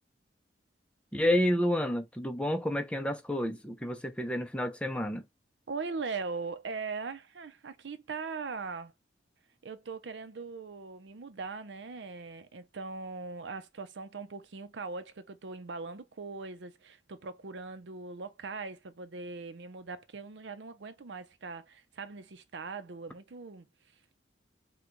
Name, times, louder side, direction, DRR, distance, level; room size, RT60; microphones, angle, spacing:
voice 1, 1.1-5.2, left 1 dB, 5° left, 0.5 m, -30 dB
voice 2, 5.7-8.9 9.6-23.7, right 4 dB, 85° right, 0.6 m, -40 dB
3.9 x 2.3 x 4.4 m
head